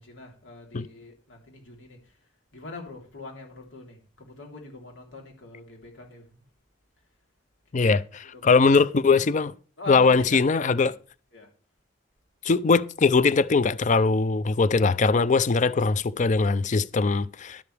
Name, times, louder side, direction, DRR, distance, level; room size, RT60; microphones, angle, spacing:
voice 1, 0.0-2.0 2.5-6.4 7.9-8.0 8.3-8.5 9.1-9.3 9.8-10.8 11.3-11.5, left 3 dB, 80° left, 3.4 m, -42 dB
voice 2, 7.7-9.5 9.9-10.9 12.4-17.6, left 4 dB, 40° left, 0.4 m, -21 dB
12.0 x 11.5 x 3.4 m
head